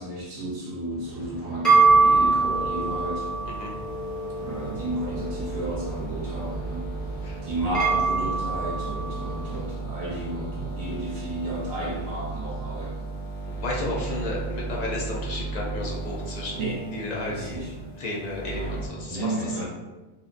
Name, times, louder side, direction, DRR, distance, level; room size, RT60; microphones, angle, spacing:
voice 1, 0.0-3.3 4.4-6.9 7.4-13.1 16.6-16.8 17.2-17.9 18.5-19.6, right 1 dB, 45° right, -5 dB, 0.6 m, -32 dB
sound 1, 1.0-9.5, right 4 dB, ahead, 0.5 m, -25 dB
sound 2, 1.8-18.9, right 3 dB, 75° left, 0.8 m, -35 dB
voice 2, 13.5-16.6 16.9-17.6 18.0-19.3 19.6-19.7, left 2 dB, 55° left, -4 dB, 0.5 m, -32 dB
2.6 x 2.1 x 2.5 m, 1.1 s
omnidirectional pair, 1.1 m